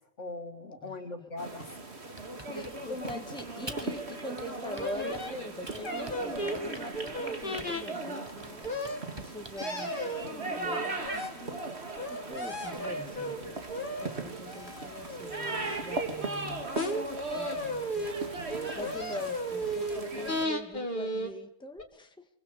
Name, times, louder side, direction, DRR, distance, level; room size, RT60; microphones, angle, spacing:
voice 1, 0.0-1.8 2.5-3.2 3.5-3.8 18.5-18.9, left 2 dB, 60° left, 5 dB, 2.8 m, -42 dB
voice 2, 0.8-1.3 2.5-13.6 14.0-16.7 17.3-18.2 18.4-22.3, left 1 dB, 5° left, 5 dB, 1.8 m, -44 dB
sound 1, 1.4-20.4, right 3 dB, 50° right, 2.7 m, -38 dB
Typing, 2.2-4.0 4.4-5.3 5.7-7.9 8.3-9.7, right 2 dB, 20° right, 1.7 m, -47 dB
sound 2, 4.8-5.3 5.8-7.8 8.6-9.0 9.6-10.2 10.6-11.3 12.0-13.4 13.7-14.1 14.5-15.8 16.8-17.0 17.3-18.1 18.5-20.0 20.3-21.3 21.8-21.9, equal, 35° left, 2.7 m, -34 dB
25.0 x 23.0 x 7.0 m, 0.74 s
omnidirectional pair, 1.4 m